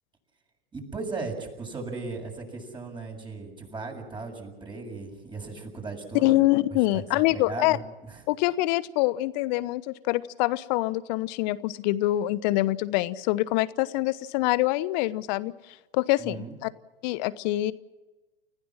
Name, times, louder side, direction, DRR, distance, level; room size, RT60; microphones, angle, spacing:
voice 1, 0.7-6.3 6.9-7.8 8.1-8.2 16.2-16.6, right 3 dB, 15° right, 2 dB, 7.2 m, -37 dB
voice 2, 6.2-7.8 8.3-15.5 15.9-16.7 17.0-17.7, left 17 dB, 50° left, 17 dB, 1.1 m, -25 dB
30.0 x 16.0 x 7.6 m, 1.1 s
hypercardioid pair, 95°, 29 cm